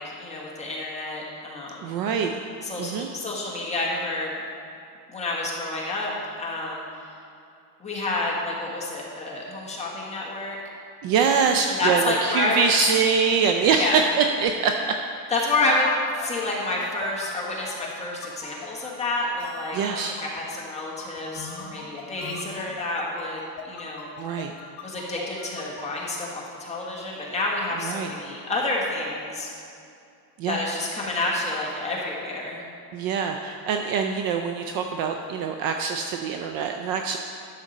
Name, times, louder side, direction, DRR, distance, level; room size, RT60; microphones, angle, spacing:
voice 1, 0.0-1.9 2.6-4.3 5.1-7.1 7.8-10.6 11.7-12.7 13.0-13.3 13.8-14.0 15.3-15.9 16.1-24.1 24.8-29.5 30.5-32.6, left 2 dB, 15° left, -4 dB, 1.4 m, -29 dB
voice 2, 1.8-2.4 2.8-3.1 11.0-15.0 19.7-20.2 24.2-24.5 27.8-28.1 30.4-30.6 32.9-37.2, right 6 dB, 45° right, 4 dB, 0.5 m, -24 dB
sound 1, 16.2-25.8, left 6 dB, 65° left, 1.7 m, -40 dB
11.0 x 6.5 x 4.1 m, 2.6 s
cardioid pair, 155°, 50 cm